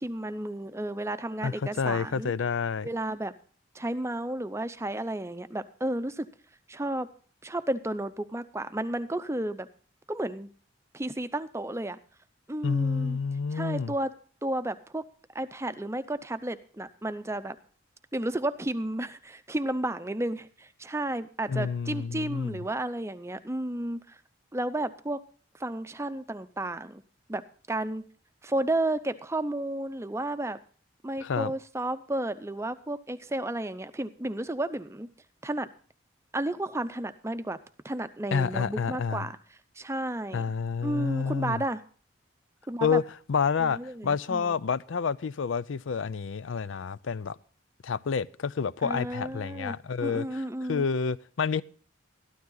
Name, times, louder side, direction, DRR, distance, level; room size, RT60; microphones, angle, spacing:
voice 1, 0.0-2.3 2.8-3.3 3.7-6.3 6.7-7.1 7.4-9.7 10.1-10.5 10.9-12.0 12.5-13.2 13.5-14.1 14.4-15.0 15.3-17.6 18.1-24.2 24.5-25.2 25.6-27.0 27.3-27.4 27.7-28.0 28.4-30.6 31.0-35.1 35.4-35.7 36.3-37.6 37.8-39.4 39.8-40.5 40.8-41.8 42.7-43.0 43.6-44.5 48.8-49.7 50.0-50.8, right 1 dB, 15° right, 0.6 m, -32 dB
voice 2, 1.4-2.9 12.6-13.9 21.5-22.6 31.2-31.5 38.3-39.3 40.3-41.6 42.8-47.4 47.8-50.4 50.7-51.6, left 5 dB, 80° left, 0.5 m, -29 dB
13.0 x 12.5 x 3.9 m
head